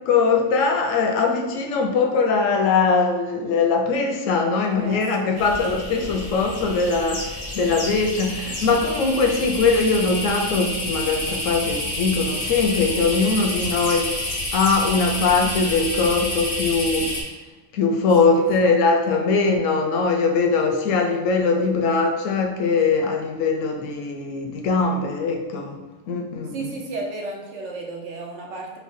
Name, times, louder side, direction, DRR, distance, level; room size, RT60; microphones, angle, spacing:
voice 1, 0.0-14.1 14.5-17.2 17.7-25.8 26.1-26.7, left 4 dB, 85° left, 3 dB, 0.9 m, -21 dB
voice 2, 4.6-5.4 18.2-18.7 19.1-19.2 26.5-28.8, right 3 dB, 70° right, -1 dB, 0.9 m, -34 dB
sound 1, 5.4-17.2, left 1 dB, 50° left, 0.4 m, -29 dB
3.1 x 2.0 x 4.2 m, 1.1 s
omnidirectional pair, 1.3 m